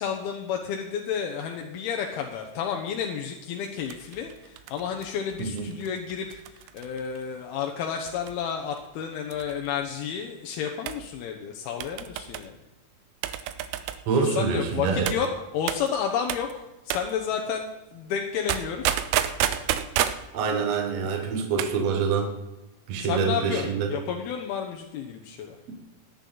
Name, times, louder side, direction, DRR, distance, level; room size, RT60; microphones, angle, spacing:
voice 1, 0.0-12.5 14.1-19.0 23.0-25.6, left 7 dB, 90° left, 2 dB, 2.9 m, -31 dB
sound 1, 3.9-7.2 8.1-8.5 8.8-8.9 9.3-9.7 10.9-11.1 11.8-12.5 13.2-14.1 15.1-15.3 15.7-15.9 16.3-16.5 16.9-17.1 18.5-20.3 21.4-21.8 22.1-22.2, right 11 dB, 85° right, 2.7 m, -30 dB
voice 2, 14.1-15.1 20.3-22.3 22.9-23.9, right 5 dB, 55° right, 4 dB, 2.2 m, -26 dB
17.5 x 10.5 x 3.9 m, 1.0 s
omnidirectional pair, 4.3 m